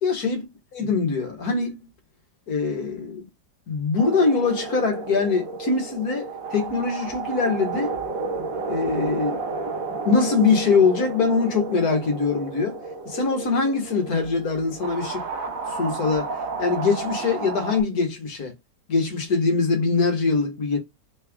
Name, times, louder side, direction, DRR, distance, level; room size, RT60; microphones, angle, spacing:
voice 1, 0.0-0.4 0.7-1.9 2.5-3.3 3.7-8.0 8.7-9.4 10.1-12.8 13.1-15.2 15.7-18.5 18.9-20.8, left 4 dB, 60° left, 1.8 m, -23 dB
sound 1, 4.0-17.8, right 4 dB, 50° right, 1.6 m, -32 dB
4.1 x 3.3 x 3.5 m
omnidirectional pair, 1.9 m